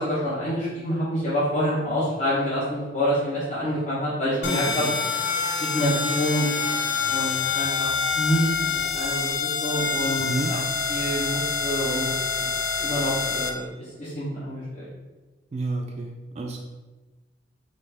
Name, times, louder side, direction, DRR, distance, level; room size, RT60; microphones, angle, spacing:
voice 1, 0.0-4.8 5.6-6.7 7.1-7.9 8.1-8.5 8.9-10.6 10.9-12.1 12.4-12.5 12.8-13.7 14.0-14.9, equal, 45° left, -10 dB, 1.0 m, -27 dB
sound 1, 4.4-13.5, left 5 dB, 70° left, 0.5 m, -26 dB
voice 2, 4.4-5.0 10.2-10.5 15.5-16.6, right 2 dB, 35° right, 1 dB, 0.4 m, -30 dB
4.2 x 3.2 x 3.4 m, 1.2 s
head